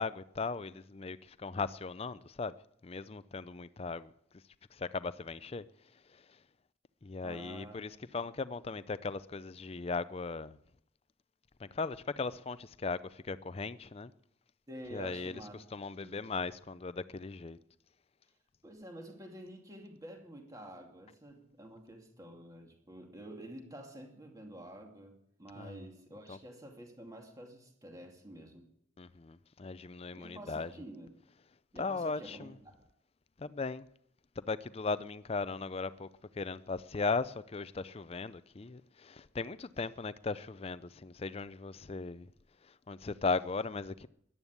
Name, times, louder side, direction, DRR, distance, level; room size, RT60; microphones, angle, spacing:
voice 1, 0.0-2.5 2.8-4.1 4.7-5.7 6.1-6.4 7.0-10.6 11.6-14.1 14.9-15.4 15.7-17.6 25.6-25.8 26.3-26.4 29.0-30.7 31.8-32.5 33.4-33.9 34.4-42.3 42.6-44.1, left 4 dB, 30° left, 0.5 m, -38 dB
voice 2, 7.2-7.8 8.1-8.2 14.7-15.5 16.0-16.2 18.6-28.7 30.1-31.1 31.7-32.9, right 1 dB, 20° right, 2.4 m, -49 dB
14.5 x 11.0 x 8.2 m
head